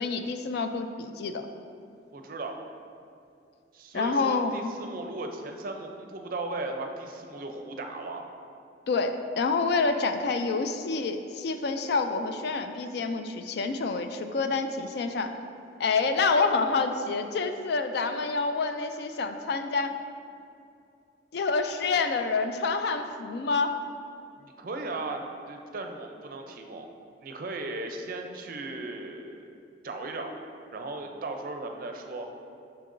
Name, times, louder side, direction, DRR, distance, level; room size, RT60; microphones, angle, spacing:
voice 1, 0.0-1.4 3.9-4.7 8.9-15.3 15.8-19.9 21.3-23.8, left 4 dB, 60° left, 8 dB, 0.4 m, -27 dB
voice 2, 2.1-2.6 3.7-8.3 24.4-26.9 27.2-29.4 29.8-30.3 30.7-32.3, right 2 dB, 50° right, 4 dB, 0.5 m, -37 dB
6.5 x 5.7 x 2.6 m, 2.5 s
head